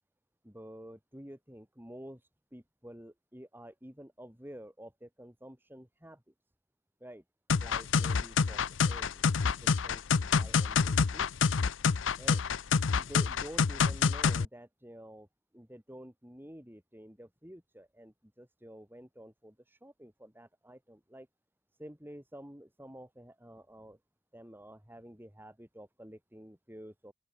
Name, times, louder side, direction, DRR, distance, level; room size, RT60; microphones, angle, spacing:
voice 1, 0.4-6.2 7.0-7.2 7.6-11.3 12.2-12.4 13.0-15.3 15.5-21.3 21.8-24.0 24.3-27.1, equal, 10° right, 2.8 m, -50 dB
sound 1, 7.5-14.4, left 5 dB, 75° left, 0.6 m, -27 dB
open air
head